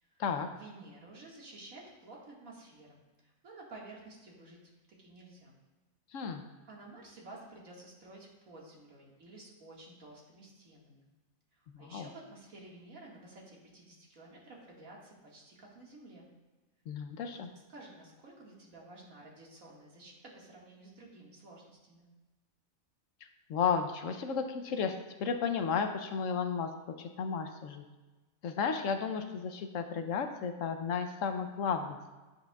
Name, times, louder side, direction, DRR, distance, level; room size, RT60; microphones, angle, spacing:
voice 1, 0.5-4.6 4.9-5.6 6.7-11.0 11.5-16.3 17.3-17.4 17.7-22.1, right 2 dB, 75° right, -3 dB, 2.2 m, -52 dB
voice 2, 6.1-6.4 11.7-12.1 16.9-17.5 23.5-26.7 27.0-27.8 28.4-32.1, left 6 dB, 70° left, 6 dB, 1.0 m, -33 dB
10.0 x 8.8 x 2.3 m, 1.2 s
omnidirectional pair, 1.5 m